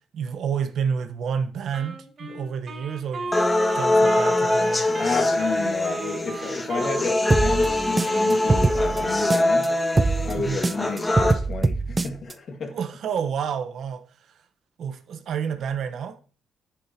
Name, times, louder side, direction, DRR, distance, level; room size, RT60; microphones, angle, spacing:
voice 1, 0.1-3.3 3.7-4.9 10.4-10.6 12.7-14.4 14.8-16.2, right 7 dB, 65° right, 1.1 m, -29 dB
Wind instrument woodwind instrument, 1.7-9.2, right 3 dB, 50° right, 5.0 m, -36 dB
sound 1, 3.3-11.3, left 1 dB, 20° left, 2.0 m, -23 dB
voice 2, 5.0-9.7 10.2-12.8, left 4 dB, 55° left, 2.1 m, -31 dB
sound 2, 7.3-9.7 10.0-12.3, right 3 dB, 25° right, 0.6 m, -23 dB
9.9 x 9.6 x 2.9 m
cardioid pair, 90°, 0 cm